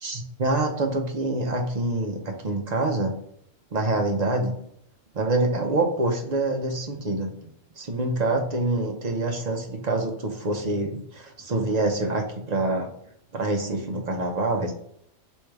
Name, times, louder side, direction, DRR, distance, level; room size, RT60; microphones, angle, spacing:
voice 1, 0.0-3.1 3.7-4.5 5.1-7.3 7.8-12.9 13.3-14.7, right 2 dB, 50° right, 2 dB, 0.5 m, -26 dB
3.2 x 3.2 x 4.6 m, 0.72 s
omnidirectional pair, 1.5 m